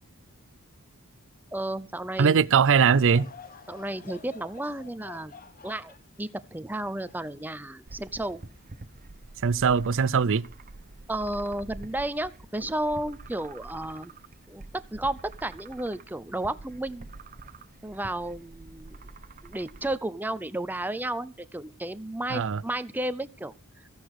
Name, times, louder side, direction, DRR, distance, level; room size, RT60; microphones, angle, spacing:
voice 1, 1.5-2.5 3.7-5.3 5.6-8.4 11.1-14.1 14.5-17.1 17.8-19.1 19.4-23.9, right 1 dB, 10° right, 0.6 m, -33 dB
voice 2, 2.2-3.3 9.4-10.4 22.3-22.6, right 6 dB, 60° right, 0.5 m, -21 dB
Laughter / Crowd, 2.5-8.0 8.5-8.6 9.5-9.7, left 5 dB, 40° left, 1.3 m, -49 dB
sound 1, 7.9-19.9, right 3 dB, 40° right, 0.9 m, -47 dB
14.5 x 10.0 x 4.8 m
head